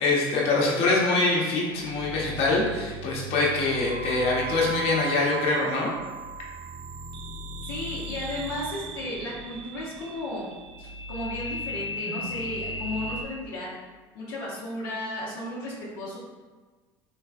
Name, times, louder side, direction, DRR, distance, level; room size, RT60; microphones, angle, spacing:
voice 1, 0.0-5.9 12.0-12.2, left 3 dB, 55° left, -3 dB, 1.0 m, -24 dB
sound 1, 1.6-13.2, right 2 dB, 45° right, 0.4 m, -37 dB
voice 2, 7.6-10.5 10.8-13.7 14.1-16.2, left 1 dB, 80° left, -7 dB, 0.7 m, -34 dB
3.3 x 3.2 x 2.4 m, 1.3 s
hypercardioid pair, 80°, 12 cm